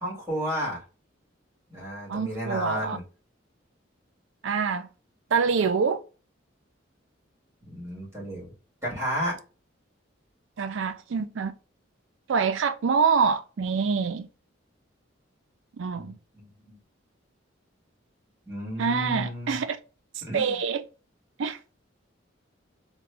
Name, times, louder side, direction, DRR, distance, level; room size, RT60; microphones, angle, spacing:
voice 1, 0.0-0.8 1.7-3.0 7.6-8.5 8.8-9.4 15.9-16.8 18.5-19.6 20.3-20.6, equal, 15° right, 2.0 m, -32 dB
voice 2, 2.1-3.0 4.4-4.9 5.3-6.0 10.6-11.5 12.3-14.3 15.8-16.2 18.8-19.8 20.2-20.8 21.4-21.6, right 5 dB, 75° right, 0.4 m, -25 dB
3.5 x 2.2 x 3.3 m
head